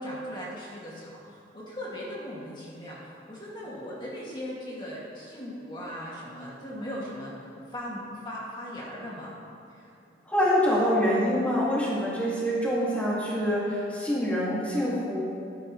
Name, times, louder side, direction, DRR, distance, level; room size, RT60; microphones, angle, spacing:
voice 1, 0.0-9.3 9.7-9.9 10.4-10.8, equal, 25° left, -6 dB, 2.3 m, -39 dB
voice 2, 10.3-15.2, equal, 10° left, -8 dB, 2.2 m, -25 dB
15.5 x 11.5 x 3.2 m, 2.5 s
head